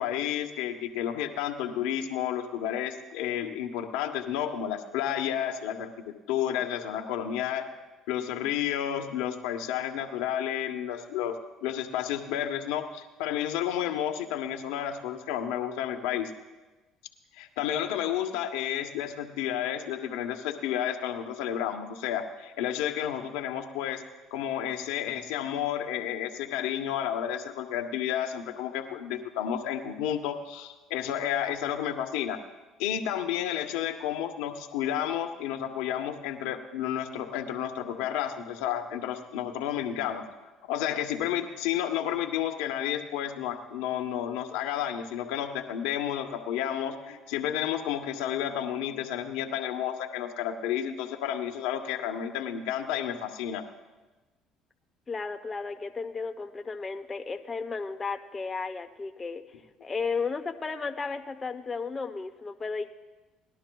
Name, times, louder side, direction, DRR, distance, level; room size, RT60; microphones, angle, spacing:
voice 1, 0.0-7.7 8.1-16.3 17.4-24.0 24.3-32.4 32.8-40.2 40.7-53.6, left 10 dB, 80° left, 4 dB, 0.9 m, -31 dB
voice 2, 55.1-59.4 59.8-62.9, left 4 dB, 30° left, 6 dB, 0.7 m, -34 dB
19.0 x 11.5 x 2.3 m, 1.2 s
supercardioid pair, 75°, 0 cm